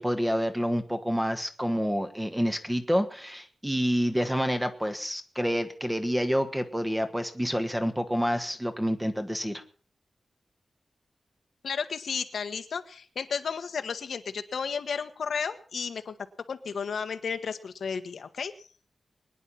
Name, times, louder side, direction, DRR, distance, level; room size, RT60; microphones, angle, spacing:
voice 1, 0.0-9.6, equal, 5° right, 7 dB, 1.6 m, -28 dB
voice 2, 11.6-16.1 16.5-18.7, left 6 dB, 85° left, 8 dB, 1.3 m, -33 dB
22.5 x 10.0 x 5.8 m, 0.42 s
wide cardioid pair, 125°, 0 cm